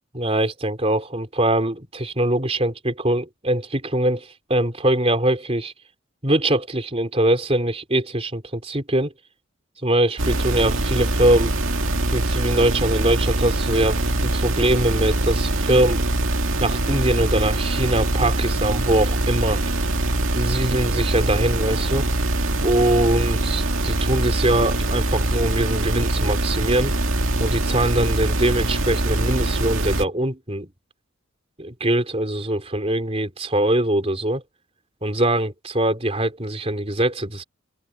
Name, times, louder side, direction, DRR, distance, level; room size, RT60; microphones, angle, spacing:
voice 1, 0.1-5.7 6.2-9.1 9.8-11.5 12.1-16.0 16.6-19.6 20.3-22.0 22.6-26.9 27.4-30.7 31.6-34.4 35.0-37.4, right 1 dB, 30° right, 3.9 m, -22 dB
sound 1, 10.2-30.0, right 1 dB, 70° right, 2.4 m, -23 dB
head